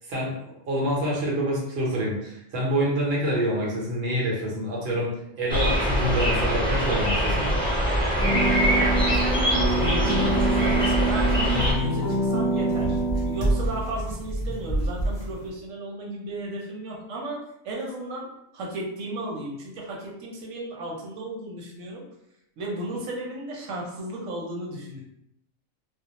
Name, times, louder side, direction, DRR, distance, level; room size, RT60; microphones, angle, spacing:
voice 1, 0.1-5.1 5.4-7.4, equal, 55° right, -4 dB, 0.9 m, -26 dB
sound 1, 5.5-11.7, equal, 5° left, 0.6 m, -23 dB
sound 2, 8.2-13.9, right 2 dB, 40° left, 0.4 m, -26 dB
voice 2, 8.4-22.0 22.6-25.0, right 1 dB, 90° right, -2 dB, 1.0 m, -34 dB
sound 3, 8.5-15.5, right 1 dB, 40° right, 0.6 m, -31 dB
2.3 x 2.0 x 2.8 m, 0.81 s
omnidirectional pair, 1.3 m